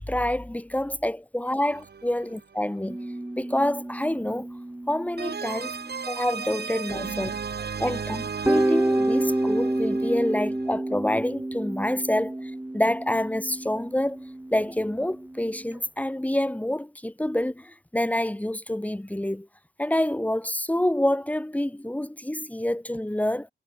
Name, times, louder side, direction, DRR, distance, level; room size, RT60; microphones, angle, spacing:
voice 1, 0.1-3.0 3.4-4.5 4.9-5.7 6.1-7.3 7.8-14.2 14.5-19.5 19.8-23.5, left 1 dB, 10° left, 2.6 m, -27 dB
sound 1, 1.7-2.7 5.2-10.8, right 6 dB, 60° right, 5.7 m, -35 dB
rmr morphagene reels - guitar chords, 2.9-7.3 7.6-7.7 8.5-15.8, right 1 dB, 10° right, 2.3 m, -29 dB
wide cardioid pair, 175°, 19 cm